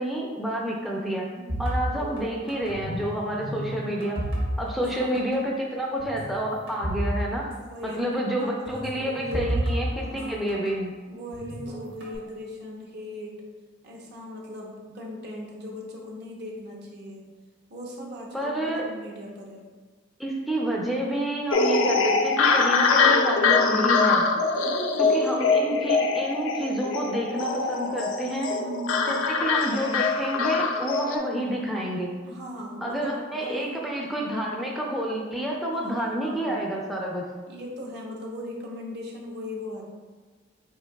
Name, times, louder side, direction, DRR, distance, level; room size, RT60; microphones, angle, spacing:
voice 1, 0.0-1.3 1.6-4.2 4.6-7.4 7.8-10.9 18.3-18.9 20.2-24.3 25.0-28.5 29.1-32.1 32.8-37.2, right 1 dB, ahead, -2 dB, 0.4 m, -29 dB
voice 2, 1.3-1.7 4.7-5.3 7.7-9.5 9.9-10.6 11.1-13.4 13.8-17.2 17.7-19.6 24.6-25.6 28.5-29.2 32.2-33.9 35.7-36.6 37.5-39.9, left 1 dB, 60° right, -2 dB, 0.9 m, -38 dB
sound 1, 1.5-3.0 3.3-4.9 5.2-5.4 6.0-7.1 7.4-7.5 8.7-10.7 11.3-12.2, right 1 dB, 75° right, 1.2 m, -31 dB
sound 2, 21.5-31.2, left 4 dB, 75° left, 0.4 m, -23 dB
4.6 x 4.4 x 2.3 m, 1.4 s
head